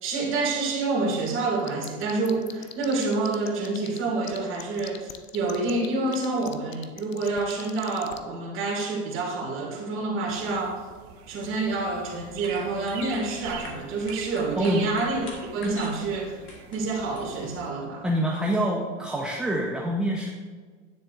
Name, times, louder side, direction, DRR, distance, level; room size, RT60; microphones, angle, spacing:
voice 1, 0.0-10.8 11.3-16.4 16.7-18.0, right 3 dB, 30° right, -2 dB, 2.4 m, -28 dB
sound 1, 1.5-4.0 4.2-8.2, left 12 dB, 85° left, 0.7 m, -40 dB
sound 2, 10.3-17.7, right 8 dB, 50° right, 1.0 m, -44 dB
sound 3, 12.2-17.5, left 3 dB, 30° left, 1.5 m, -45 dB
voice 2, 14.6-14.9 18.0-20.3, equal, ahead, -1 dB, 0.5 m, -26 dB
9.6 x 7.1 x 2.6 m, 1.5 s
hypercardioid pair, 115°, 38 cm